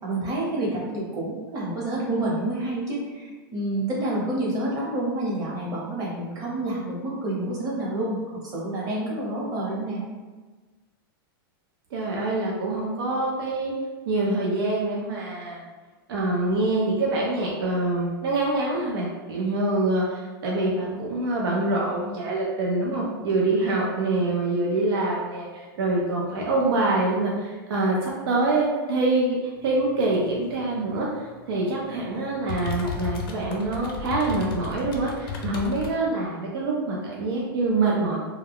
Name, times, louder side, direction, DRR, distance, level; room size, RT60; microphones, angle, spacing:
voice 1, 0.0-10.0, right 1 dB, 30° right, -5 dB, 0.9 m, -28 dB
voice 2, 11.9-13.7 14.1-15.6 16.1-38.2, right 2 dB, 80° right, -3 dB, 0.5 m, -25 dB
sound 1, 29.6-36.0, left 4 dB, 70° left, 0.6 m, -36 dB
2.3 x 2.2 x 3.4 m, 1.3 s
supercardioid pair, 135°, 12 cm